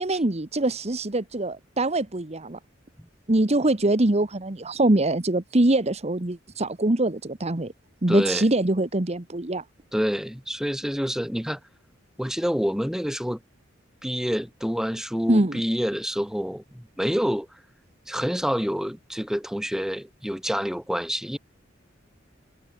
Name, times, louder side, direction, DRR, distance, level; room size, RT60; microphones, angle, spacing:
voice 1, 0.0-2.6 3.3-7.7 8.0-9.6 15.3-15.6, right 2 dB, 35° right, 1.2 m, -23 dB
voice 2, 8.1-8.4 9.9-11.6 12.2-13.4 14.0-17.5 18.1-21.4, equal, 5° right, 4.2 m, -27 dB
head